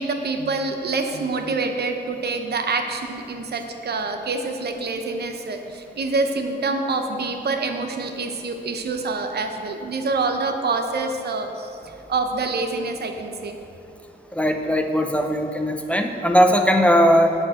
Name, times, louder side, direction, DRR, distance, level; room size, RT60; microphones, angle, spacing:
voice 1, 0.0-11.7 12.1-13.6, right 3 dB, 70° right, 5 dB, 0.8 m, -26 dB
voice 2, 14.3-17.3, equal, 5° left, 4 dB, 0.6 m, -19 dB
9.5 x 4.5 x 7.6 m, 2.8 s
wide cardioid pair, 130°, 17 cm